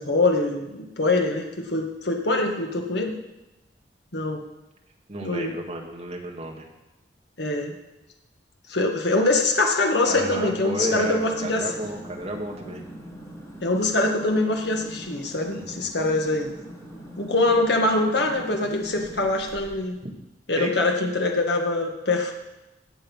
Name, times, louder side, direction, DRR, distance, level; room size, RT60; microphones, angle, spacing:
voice 1, 0.0-3.2 4.1-4.4 5.2-5.6 7.4-7.8 8.7-11.7 13.6-16.5 17.2-20.0 20.5-22.3, left 2 dB, 65° left, 3 dB, 1.7 m, -24 dB
voice 2, 5.1-6.7 10.1-12.8 15.5-15.9 20.0-20.1 20.6-20.7, right 1 dB, 35° right, 1 dB, 2.0 m, -32 dB
sound 1, 10.8-19.9, equal, 15° left, 2.5 m, -42 dB
17.0 x 6.9 x 5.6 m, 0.99 s
head